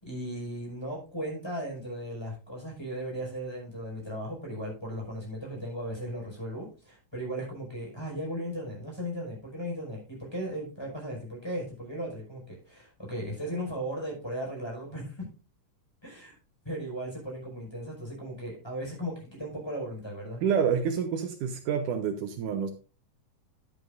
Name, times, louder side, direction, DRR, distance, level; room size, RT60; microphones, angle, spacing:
voice 1, 0.0-15.3 16.0-16.4 16.6-20.4, equal, 5° left, -3 dB, 5.1 m, -36 dB
voice 2, 20.4-22.7, right 7 dB, 75° right, 7 dB, 2.3 m, -28 dB
10.5 x 10.5 x 2.5 m, 0.33 s
omnidirectional pair, 3.8 m